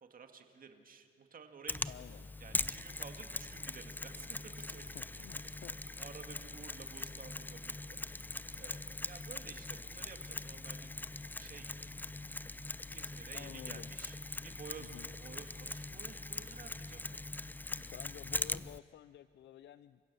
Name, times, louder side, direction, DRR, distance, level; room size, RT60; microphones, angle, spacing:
voice 1, 0.0-1.9 2.4-10.9 11.2-12.3 12.9-17.1, right 5 dB, 45° right, 6 dB, 2.2 m, -53 dB
Mechanisms, 1.7-18.8, left 2 dB, 10° left, 0.5 m, -42 dB
voice 2, 1.9-2.3 4.9-5.7 13.3-13.9 14.8-15.1 17.8-20.0, left 12 dB, 60° left, 15 dB, 0.5 m, -52 dB
sound 1, 3.7-10.1, right 7 dB, 85° right, 2.0 m, -68 dB
29.0 x 16.0 x 7.0 m, 2.3 s
cardioid pair, 90°, 20 cm